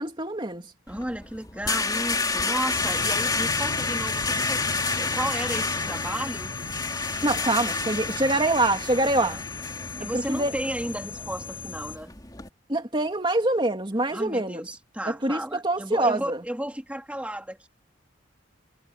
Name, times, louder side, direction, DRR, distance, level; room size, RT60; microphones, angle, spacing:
voice 1, 0.0-0.7 7.2-9.4 10.1-10.6 12.7-14.7 15.0-16.4, right 2 dB, 25° right, 2.6 m, -25 dB
sound 1, 0.9-12.5, left 4 dB, 20° left, 3.2 m, -30 dB
voice 2, 0.9-4.6 4.9-6.5 9.2-9.4 10.0-12.1 14.1-17.7, right 1 dB, 5° right, 2.6 m, -33 dB
sound 2, 2.7-12.0, left 5 dB, 80° left, 1.2 m, -38 dB
head